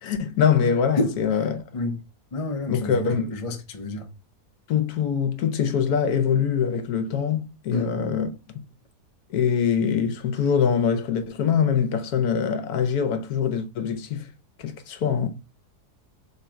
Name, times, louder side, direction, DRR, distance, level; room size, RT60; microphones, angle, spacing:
voice 1, 0.0-1.6 2.7-3.3 4.7-8.3 9.3-14.2 14.6-15.3, left 7 dB, 70° left, 1.2 m, -23 dB
voice 2, 2.3-4.1 7.7-8.0, left 1 dB, 40° left, 0.4 m, -29 dB
3.6 x 3.2 x 4.4 m
omnidirectional pair, 1.7 m